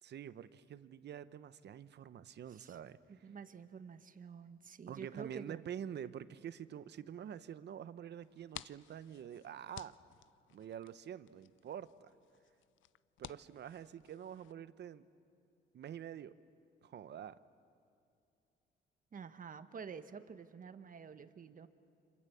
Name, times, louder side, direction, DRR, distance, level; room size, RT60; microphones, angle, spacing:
voice 1, 0.0-3.0 4.9-10.0 10.5-12.1 13.2-15.1 15.7-16.4 16.8-17.4, right 9 dB, 60° right, 14 dB, 0.9 m, -47 dB
voice 2, 3.1-5.6 19.1-21.7, right 6 dB, 45° right, 10 dB, 1.3 m, -49 dB
sound 1, 8.2-14.5, left 14 dB, 75° left, 0.5 m, -55 dB
29.5 x 26.5 x 7.0 m, 2.6 s
cardioid pair, 90°, 20 cm